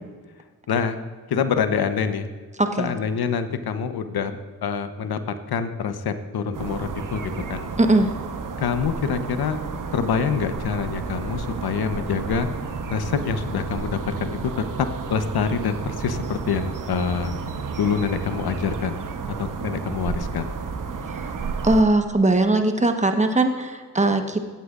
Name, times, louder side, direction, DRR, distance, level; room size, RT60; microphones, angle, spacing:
voice 1, 1.3-2.3 2.8-5.2 5.5-7.7 8.6-9.6 9.9-12.5 12.9-17.3 17.8-19.1 19.4-20.5, left 6 dB, 60° left, 10 dB, 1.0 m, -26 dB
voice 2, 2.6-2.9 7.8-8.1 21.6-24.4, right 2 dB, 15° right, 6 dB, 1.2 m, -20 dB
sound 1, 6.5-21.8, right 5 dB, 45° right, 1.1 m, -32 dB
16.5 x 8.2 x 2.5 m, 1.5 s
hypercardioid pair, 45°, 43 cm